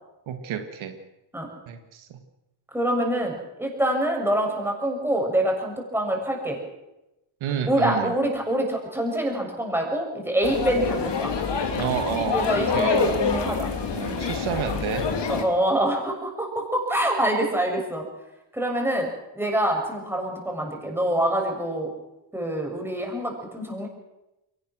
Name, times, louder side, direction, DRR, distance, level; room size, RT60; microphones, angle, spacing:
voice 1, 0.3-1.0 1.7-2.2 7.4-8.1 11.8-13.0 13.9-15.1, right 8 dB, 85° right, 6 dB, 2.0 m, -30 dB
voice 2, 2.7-6.6 7.7-11.3 12.3-13.7 15.3-18.0 18.5-19.1 19.3-21.9 22.3-23.9, right 1 dB, 5° right, 1 dB, 6.8 m, -25 dB
sound 1, 10.4-15.4, left 5 dB, 65° left, 3.0 m, -26 dB
22.5 x 18.5 x 6.3 m, 0.95 s
cardioid pair, 85°, 46 cm